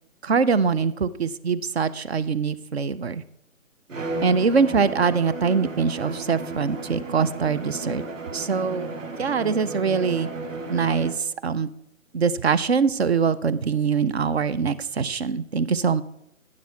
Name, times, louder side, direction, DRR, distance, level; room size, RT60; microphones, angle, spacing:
voice 1, 0.2-3.2 4.2-8.0 8.3-8.9 9.2-10.3 10.7-11.1 11.4-11.7 12.1-16.0, right 5 dB, 50° right, 17 dB, 0.6 m, -23 dB
Bowed string instrument, 3.9-11.3, right 2 dB, 65° right, 2.1 m, -34 dB
12.0 x 9.6 x 3.5 m, 0.80 s
figure-of-eight pair, 145°, 41 cm